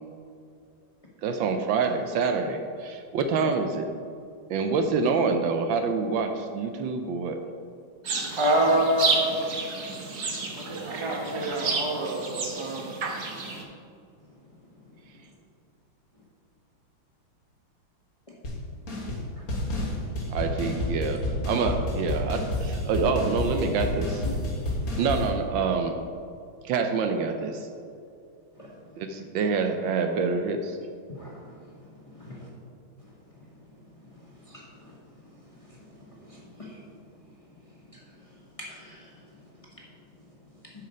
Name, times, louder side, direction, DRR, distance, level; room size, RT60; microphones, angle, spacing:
voice 1, 1.2-3.9 4.5-7.4 20.3-21.2 21.5-24.2 25.0-26.0 26.6-27.7 29.0-30.8, right 4 dB, 75° right, 6 dB, 1.3 m, -26 dB
sound 1, 8.0-13.6, right 4 dB, 50° right, 1.2 m, -31 dB
voice 2, 8.4-9.4 10.5-12.9, right 1 dB, 25° right, -1 dB, 0.7 m, -26 dB
voice 3, 10.6-11.1 14.2-15.3 16.1-16.2 19.3-20.4 24.2-25.0 28.5-29.2 31.1-32.5 33.0-40.9, left 1 dB, 20° left, -4 dB, 1.1 m, -48 dB
sound 2, 18.4-18.6 18.9-19.2 19.5-25.3, left 1 dB, 45° left, 1.8 m, -29 dB
8.6 x 6.3 x 5.0 m, 2.4 s
omnidirectional pair, 2.3 m